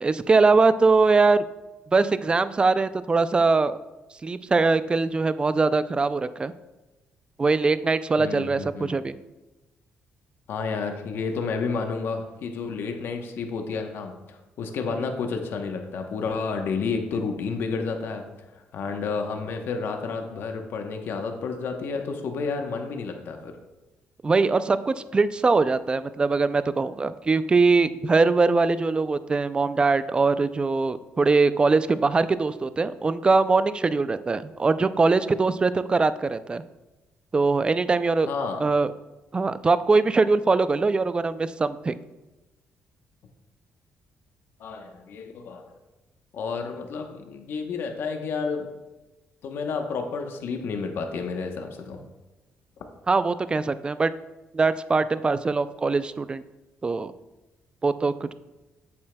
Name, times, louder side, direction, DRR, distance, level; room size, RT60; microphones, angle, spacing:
voice 1, 0.0-1.4 1.9-3.8 4.2-6.5 7.4-9.1 24.2-36.6 37.3-38.3 38.6-38.9 39.3-42.0 53.1-54.1 54.5-56.4 56.8-57.1 57.8-58.3, right 3 dB, 25° right, 14 dB, 0.3 m, -22 dB
voice 2, 8.2-8.9 10.5-18.2 18.7-23.6 38.3-38.7 44.6-45.7 46.3-48.7 49.4-52.0, left 4 dB, 70° left, 5 dB, 0.9 m, -30 dB
8.7 x 7.4 x 2.2 m, 1.0 s
cardioid pair, 95°, 4 cm